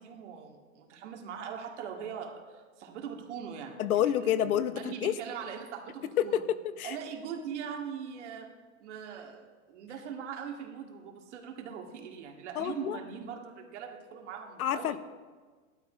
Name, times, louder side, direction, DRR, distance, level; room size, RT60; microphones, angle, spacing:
voice 1, 0.0-6.4 6.8-8.5 8.8-15.0, right 7 dB, 55° right, 2 dB, 2.1 m, -41 dB
voice 2, 3.8-5.1 6.2-7.0 12.5-13.0 14.6-15.0, left 10 dB, 85° left, 14 dB, 0.9 m, -28 dB
16.0 x 12.0 x 5.0 m, 1.5 s
supercardioid pair, 165°, 42 cm